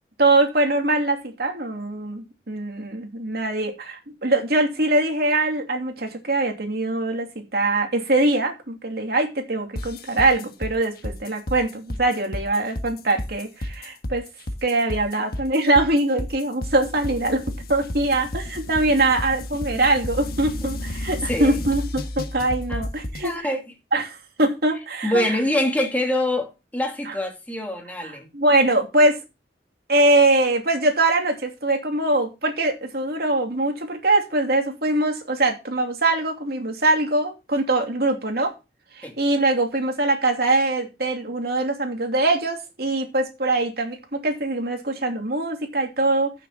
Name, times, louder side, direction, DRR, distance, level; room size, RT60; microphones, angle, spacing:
voice 1, 0.2-14.2 14.6-23.4 23.9-25.3 28.3-29.2 29.9-38.5 39.0-46.3, right 2 dB, 60° right, 2.8 m, -22 dB
sound 1, 9.8-23.3, left 1 dB, 55° left, 1.4 m, -32 dB
voice 2, 21.3-21.6 22.7-22.9 23.2-23.6 25.0-28.3 39.0-39.2, left 1 dB, 10° left, 2.4 m, -25 dB
14.5 x 6.9 x 3.7 m
head